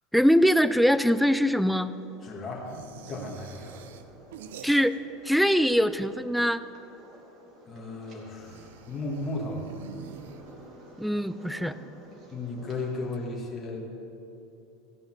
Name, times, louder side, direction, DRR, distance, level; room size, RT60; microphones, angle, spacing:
voice 1, 0.1-1.9 4.6-5.0 5.2-6.6 11.0-11.7, equal, ahead, 14 dB, 0.4 m, -22 dB
sound 1, 1.3-13.3, right 1 dB, 45° right, 2.5 m, -52 dB
voice 2, 2.2-2.7 3.1-3.8 7.7-9.7 12.3-13.8, left 2 dB, 25° left, -3 dB, 2.0 m, -35 dB
sound 2, 2.6-5.2 5.5-6.3 8.3-10.8, right 7 dB, 85° right, 0.6 m, -47 dB
15.5 x 5.4 x 7.5 m, 2.7 s
supercardioid pair, 125°, 0 cm